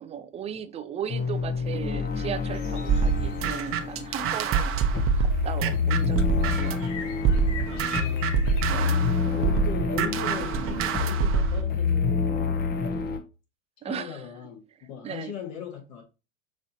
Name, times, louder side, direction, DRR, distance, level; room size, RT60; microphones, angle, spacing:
voice 1, 0.0-4.7 5.1-6.2 6.5-6.8 8.6-9.2 13.8-14.3 14.8-15.3, right 8 dB, 20° right, 0.3 m, -36 dB
sound 1, 1.1-13.2, left 5 dB, 25° left, 0.8 m, -28 dB
sound 2, 2.5-8.9, left 5 dB, 75° left, 1.4 m, -43 dB
sound 3, 2.9-6.9 7.2-11.6, right 6 dB, 35° right, 0.8 m, -26 dB
voice 2, 7.7-8.4 9.3-13.1 13.8-16.0, left 7 dB, 55° left, 1.7 m, -39 dB
6.2 x 3.0 x 2.7 m
hypercardioid pair, 95°, 37 cm